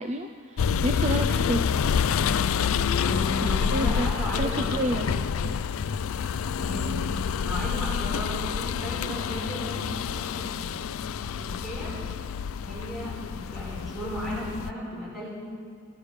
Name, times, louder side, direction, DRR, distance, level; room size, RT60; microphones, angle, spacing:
voice 1, 0.0-1.7 3.4-5.6, right 1 dB, 35° right, 5 dB, 0.5 m, -30 dB
sound 1, 0.6-14.7, left 7 dB, 80° left, 0.4 m, -28 dB
voice 2, 3.0-4.9 6.6-10.7 11.4-12.0 12.6-15.3, equal, ahead, -7 dB, 4.5 m, -35 dB
16.5 x 9.9 x 6.6 m, 2.1 s
head